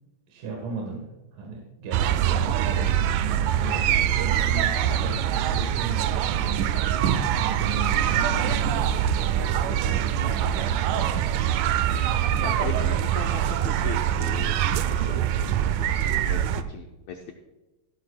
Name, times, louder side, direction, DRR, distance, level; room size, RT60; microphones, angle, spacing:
voice 1, 0.3-11.4, right 3 dB, 70° right, 0 dB, 3.1 m, -37 dB
sound 1, 1.9-16.6, right 10 dB, 85° right, 1.8 m, -24 dB
voice 2, 12.4-14.6 14.9-15.2 15.8-17.3, left 7 dB, 80° left, 2 dB, 1.5 m, -37 dB
16.0 x 11.5 x 2.3 m, 1.1 s
omnidirectional pair, 4.2 m